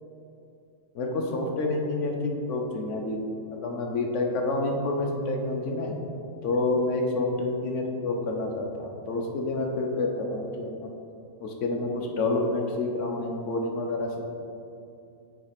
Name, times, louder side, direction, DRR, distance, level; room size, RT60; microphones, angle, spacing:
voice 1, 0.9-3.2 3.5-5.9 6.4-10.9 11.4-14.2, left 2 dB, 60° left, 1 dB, 0.8 m, -28 dB
7.4 x 2.9 x 5.7 m, 2.6 s
omnidirectional pair, 1.8 m